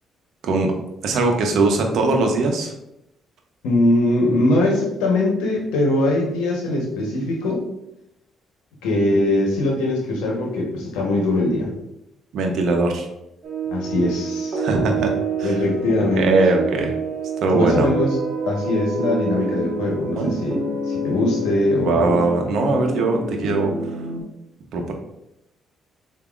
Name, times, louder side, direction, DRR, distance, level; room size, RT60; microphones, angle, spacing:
voice 1, 1.0-2.7 12.3-13.1 14.6-15.1 15.4-15.5 16.2-16.9 17.4-17.9 20.2-20.3 21.8-23.7 24.7-24.9, right 3 dB, 70° right, 3 dB, 0.9 m, -20 dB
voice 2, 3.6-7.6 8.8-11.7 13.7-14.6 15.4-16.3 17.5-18.2 18.5-20.6 20.9-22.2, left 2 dB, 85° left, 0 dB, 1.0 m, -21 dB
sound 1, 13.4-24.2, right 3 dB, 50° right, 1.1 m, -27 dB
6.8 x 2.7 x 2.4 m, 0.85 s
supercardioid pair, 65°, 0 cm